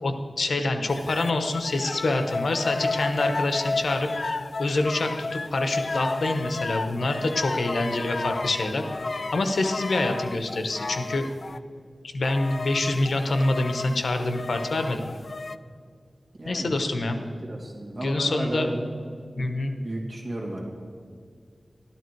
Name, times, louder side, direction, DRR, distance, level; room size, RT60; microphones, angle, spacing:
voice 1, 0.0-4.1 4.6-8.8 9.3-11.3 12.1-15.1 16.5-17.2 18.0-18.7 19.4-19.7, left 2 dB, 80° left, 6 dB, 1.1 m, -26 dB
sound 1, 0.9-11.6 12.2-15.6, left 3 dB, 55° left, 0.4 m, -32 dB
voice 2, 16.4-16.7 17.5-18.9 19.3-19.4 19.8-20.6, right 1 dB, 40° right, -2 dB, 2.9 m, -33 dB
12.5 x 12.5 x 4.7 m, 2.2 s
wide cardioid pair, 95°, 0 cm